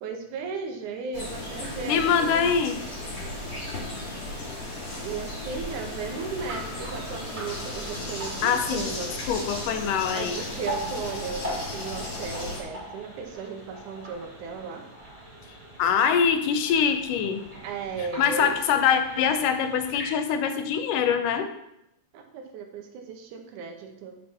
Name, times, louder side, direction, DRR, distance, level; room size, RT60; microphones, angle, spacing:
voice 1, 0.0-2.5 5.0-9.1 10.1-14.9 17.6-18.6 22.1-24.2, right 5 dB, 75° right, 4 dB, 2.3 m, -35 dB
sound 1, 1.1-12.6, left 1 dB, 55° left, 3.5 m, -35 dB
voice 2, 1.9-2.8 8.4-8.9 9.3-10.4 15.8-17.4 18.2-21.5, left 7 dB, 85° left, 8 dB, 2.3 m, -24 dB
sound 2, 6.2-20.1, equal, 15° right, 3.2 m, -41 dB
7.0 x 5.8 x 5.8 m, 0.82 s
omnidirectional pair, 3.6 m